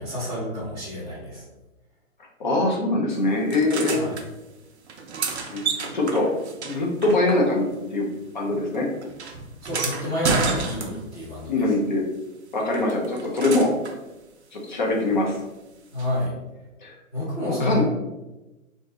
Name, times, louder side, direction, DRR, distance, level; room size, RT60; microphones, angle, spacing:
voice 1, 0.0-1.4 3.9-4.1 9.6-11.7 15.9-16.3 17.1-17.8, left 1 dB, 10° right, -13 dB, 0.8 m, -29 dB
voice 2, 2.4-4.0 5.5-6.3 6.6-8.1 8.3-8.9 11.5-12.0 12.5-13.7 14.5-15.4 16.8-17.0 17.6-17.8, left 2 dB, 35° left, -1 dB, 0.5 m, -23 dB
sound 1, 3.5-4.3 4.9-7.8 8.1-11.3 12.7-14.0 16.0-16.1, right 5 dB, 55° right, 0.5 m, -30 dB
2.5 x 2.4 x 3.8 m, 1.1 s
hypercardioid pair, 170°, 42 cm